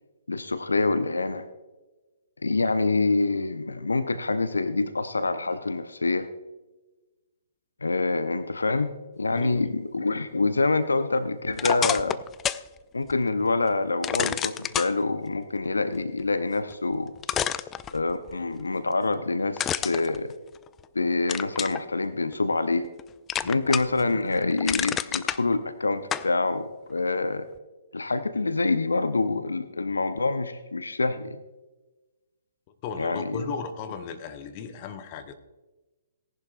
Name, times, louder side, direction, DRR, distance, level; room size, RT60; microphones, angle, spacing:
voice 1, 0.3-1.4 2.4-6.3 7.8-12.2 12.9-17.1 17.9-20.3 20.9-22.9 23.4-27.5 27.9-31.4 33.0-33.5, left 3 dB, 75° left, 12 dB, 0.7 m, -26 dB
voice 2, 9.3-9.7 23.4-23.7 32.8-35.3, left 6 dB, 35° left, 8 dB, 1.1 m, -36 dB
sound 1, 11.5-12.7 13.1-13.2 14.0-14.9 16.7-16.8 17.2-18.3 19.6-20.8 21.3-21.8 22.3-23.0 23.3-24.0 24.4-25.4 26.1-26.3, left 10 dB, 20° left, 0.3 m, -29 dB
17.5 x 11.0 x 2.5 m, 1.1 s
figure-of-eight pair, 125°, 0 cm